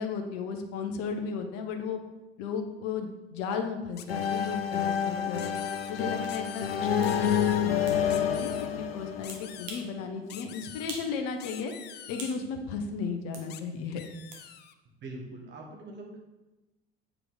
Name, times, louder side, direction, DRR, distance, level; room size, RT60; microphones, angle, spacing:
voice 1, 0.0-2.0 2.4-5.4 5.9-11.7 12.1-14.0, left 5 dB, 55° left, 5 dB, 0.9 m, -35 dB
sound 1, 4.0-4.6 5.3-5.9 6.3-6.8 7.1-7.6 8.1-8.7 9.2-9.8 10.3-10.9 11.4-12.4 13.5-13.6 13.9-14.7, left 10 dB, 35° left, 0.5 m, -46 dB
sound 2, 4.1-9.8, left 8 dB, 90° left, 0.5 m, -28 dB
sound 3, 6.2-6.4 7.0-7.2 7.9-8.0 9.3-9.9 10.3-10.4 10.9-11.2 11.5-12.4 13.3-13.5 14.3-14.5, right 3 dB, 60° right, 1.3 m, -43 dB
voice 2, 15.0-16.2, right 2 dB, 40° right, 0 dB, 1.7 m, -42 dB
8.0 x 4.9 x 3.8 m, 1.1 s
figure-of-eight pair, 60°, 29 cm